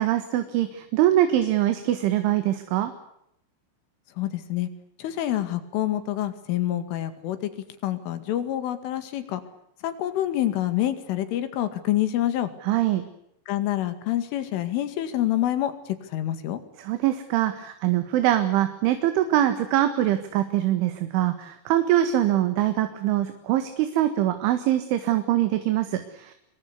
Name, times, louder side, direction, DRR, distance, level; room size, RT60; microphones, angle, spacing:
voice 1, 0.0-2.9 12.7-13.0 16.8-26.3, right 13 dB, 80° right, 8 dB, 4.2 m, -23 dB
voice 2, 4.2-4.7 5.0-7.5 7.8-9.4 9.8-12.5 13.5-16.6, left 13 dB, 90° left, 10 dB, 4.7 m, -27 dB
27.0 x 22.5 x 8.3 m, 0.75 s
omnidirectional pair, 5.5 m